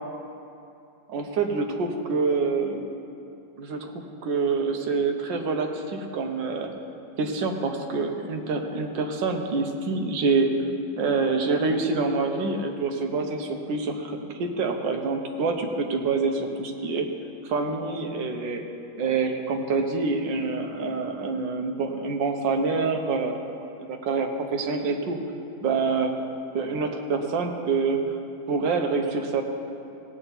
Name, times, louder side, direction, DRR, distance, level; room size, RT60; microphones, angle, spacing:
voice 1, 1.1-2.8 3.6-6.7 7.2-10.5 11.0-17.1 17.5-18.6 19.0-25.2 25.6-26.2 26.5-28.0 28.5-29.4, right 4 dB, 75° right, 4 dB, 1.6 m, -26 dB
17.0 x 9.0 x 4.1 m, 2.7 s
omnidirectional pair, 2.1 m